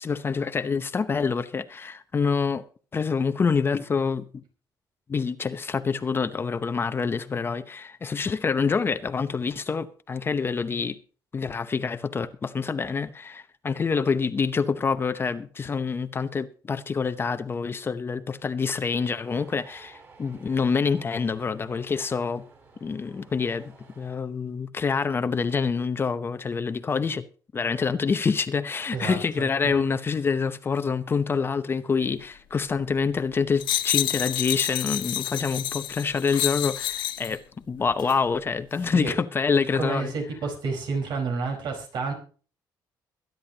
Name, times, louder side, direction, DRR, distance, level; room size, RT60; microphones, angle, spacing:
voice 1, 0.0-2.6 2.9-4.3 5.1-11.0 11.3-22.4 22.8-27.2 27.5-37.4 37.7-40.1, left 5 dB, 30° left, 0.8 m, -26 dB
sound 1, 19.2-24.2, right 4 dB, 35° right, 6.2 m, -53 dB
voice 2, 28.9-29.7 38.9-39.2 39.8-42.1, right 4 dB, 70° right, 4.7 m, -30 dB
sound 2, 33.6-37.4 38.0-38.2, left 12 dB, 80° left, 1.3 m, -28 dB
23.0 x 10.5 x 2.9 m
cardioid pair, 135°, 8 cm